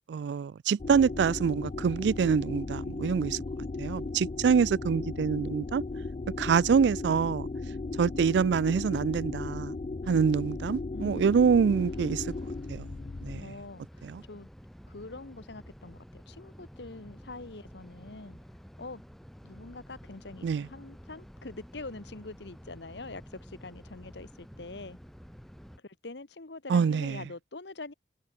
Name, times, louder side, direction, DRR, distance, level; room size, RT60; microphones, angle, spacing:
voice 1, 0.0-3.4 3.8-5.8 6.4-7.5 8.0-9.8 10.1-12.2 12.7-12.9 13.2-13.5 14.0-14.2 20.4-20.7 26.7-27.2, right 6 dB, 70° right, 0.3 m, -26 dB
sound 1, 0.8-13.4, left 3 dB, 35° left, 0.4 m, -36 dB
voice 2, 10.9-11.7 13.3-14.5 14.9-18.4 18.8-19.0 19.4-25.0 25.8-27.9, left 3 dB, 70° left, 1.4 m, -44 dB
sound 2, 11.7-25.8, equal, ahead, 1.0 m, -50 dB
head